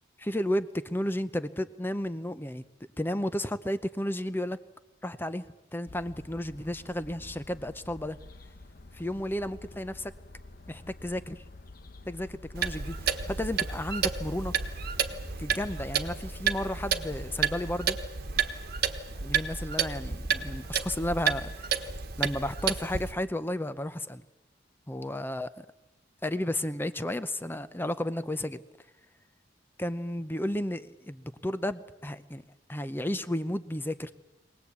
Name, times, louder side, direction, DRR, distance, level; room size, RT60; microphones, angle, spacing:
voice 1, 0.2-2.6 3.0-4.6 5.0-5.5 5.7-8.2 8.9-10.1 10.7-11.4 12.1-14.5 15.4-18.0 19.2-21.9 22.2-24.2 24.9-25.7 26.2-28.6 29.8-32.4 32.7-34.1, left 1 dB, 10° left, 12 dB, 0.8 m, -33 dB
sound 1, 5.9-17.9, left 2 dB, 50° left, 1.1 m, -49 dB
Clock, 12.5-23.1, right 7 dB, 55° right, 1.4 m, -31 dB
22.5 x 18.5 x 8.3 m, 1.0 s
head